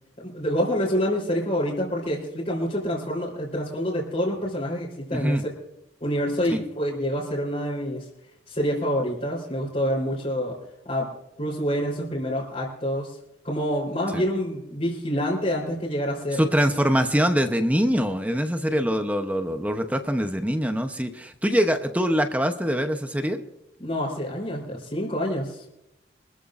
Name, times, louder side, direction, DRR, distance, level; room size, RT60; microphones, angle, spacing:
voice 1, 0.2-5.4 6.0-8.0 8.5-10.6 10.8-11.1 11.4-13.2 13.4-16.4 18.7-18.9 23.8-25.7, equal, 40° left, -8 dB, 3.8 m, -27 dB
voice 2, 5.1-5.4 6.5-6.6 14.1-14.2 16.4-23.4, equal, 10° right, 7 dB, 0.8 m, -23 dB
24.5 x 14.0 x 2.6 m, 0.86 s
head